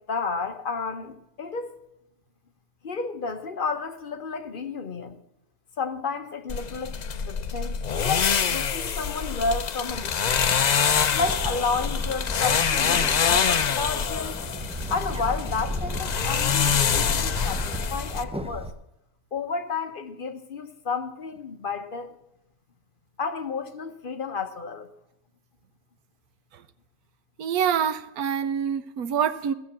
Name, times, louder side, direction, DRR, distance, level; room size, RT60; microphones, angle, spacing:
voice 1, 0.0-1.8 2.8-5.2 5.8-7.0 7.3-10.5 11.1-14.4 14.9-18.7 19.3-22.2 23.2-24.9, left 4 dB, 40° left, 1.0 m, -31 dB
sound 1, 6.5-18.2, left 7 dB, 65° left, 0.4 m, -25 dB
Bird, 9.9-18.7, equal, 10° right, 0.4 m, -34 dB
voice 2, 27.4-29.5, right 8 dB, 85° right, 1.3 m, -26 dB
15.5 x 7.2 x 7.2 m
omnidirectional pair, 1.5 m